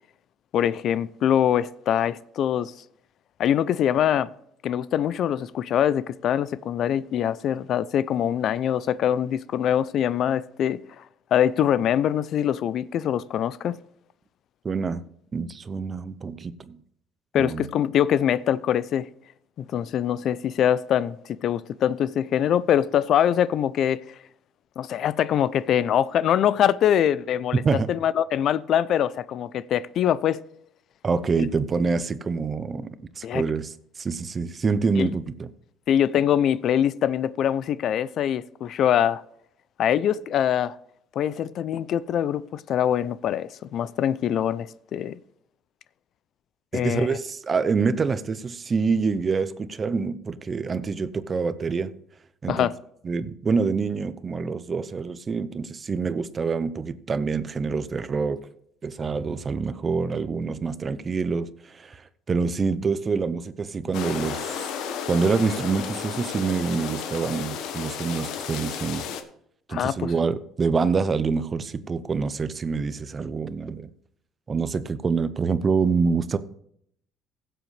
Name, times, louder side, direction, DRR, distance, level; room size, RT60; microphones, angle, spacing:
voice 1, 0.5-2.7 3.4-4.3 4.6-11.0 11.3-13.8 17.3-19.1 19.6-24.2 24.8-30.4 31.4-31.5 33.2-33.4 35.0-35.1 35.9-39.2 39.8-40.7 41.2-45.2 46.7-47.2 52.5-52.8 69.7-70.1, left 10 dB, 55° left, 0.4 m, -23 dB
voice 2, 14.6-15.0 15.3-16.8 17.4-17.7 27.6-27.9 31.0-32.9 33.2-35.5 46.7-51.9 52.4-52.7 53.0-58.5 58.8-62.0 62.3-64.6 65.1-69.0 69.7-73.9 74.5-76.4, right 5 dB, 30° right, 0.6 m, -26 dB
sound 1, 63.9-69.2, left 7 dB, 75° left, 1.2 m, -33 dB
16.0 x 7.8 x 3.3 m
cardioid pair, 120°, 0 cm